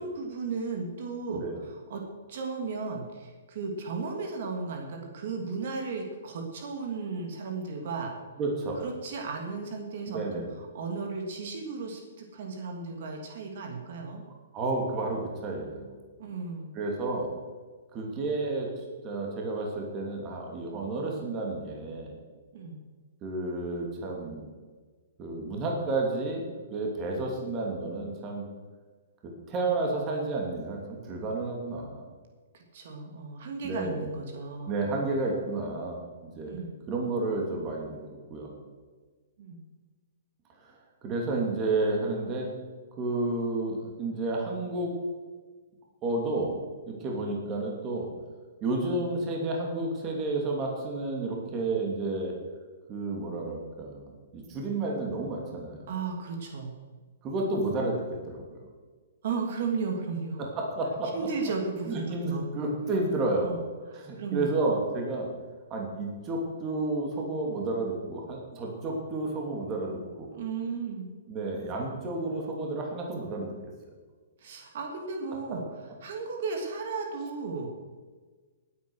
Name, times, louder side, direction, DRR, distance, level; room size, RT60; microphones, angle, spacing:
voice 1, 0.0-2.0 2.3-8.1 8.8-14.2 16.2-16.7 22.5-22.8 32.5-35.2 36.4-36.7 39.4-39.6 55.9-56.7 59.2-60.4 61.1-62.5 63.4-63.6 63.9-64.5 70.3-71.1 74.4-75.6 76.0-77.8, right 4 dB, 55° right, 2 dB, 2.6 m, -35 dB
voice 2, 8.4-8.8 10.1-10.5 14.5-15.9 16.7-17.3 17.9-22.2 23.2-24.4 25.2-26.4 26.7-28.4 29.5-32.1 33.6-34.1 34.7-38.0 38.3-38.6 40.6-40.7 41.0-42.5 43.0-44.9 46.0-46.6 46.9-48.1 48.6-52.4 52.9-55.9 57.2-58.6 60.4-61.1 61.9-63.5 63.9-65.3 65.7-70.3 71.3-73.5 75.5-75.6, right 2 dB, 20° right, 0 dB, 2.7 m, -31 dB
19.0 x 8.8 x 6.4 m, 1.4 s
hypercardioid pair, 165°, 0 cm